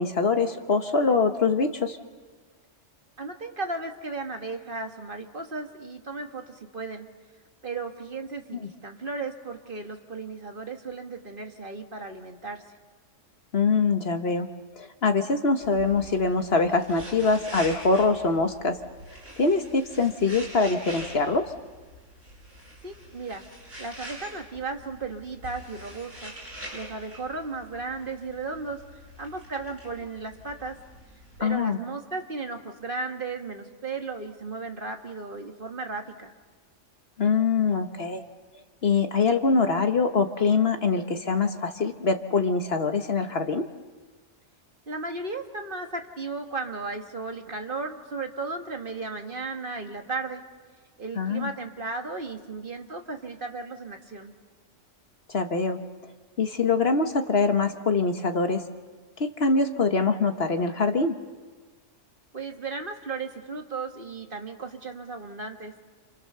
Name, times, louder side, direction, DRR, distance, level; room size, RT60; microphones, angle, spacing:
voice 1, 0.0-2.0 13.5-14.5 14.7-18.8 19.4-21.5 31.4-31.8 37.2-38.2 38.8-43.7 51.2-51.5 55.3-55.8 56.4-58.6 59.2-61.1, left 4 dB, 50° left, 7 dB, 1.4 m, -24 dB
voice 2, 3.2-7.1 7.6-12.6 22.8-23.4 23.8-26.3 26.7-28.8 29.2-30.8 31.4-36.3 44.9-50.4 51.0-54.3 62.3-65.7, right 3 dB, 45° right, 4 dB, 1.9 m, -35 dB
sound 1, 15.6-31.4, equal, 70° right, 7.5 m, -45 dB
29.0 x 27.0 x 6.8 m, 1.4 s
omnidirectional pair, 1.3 m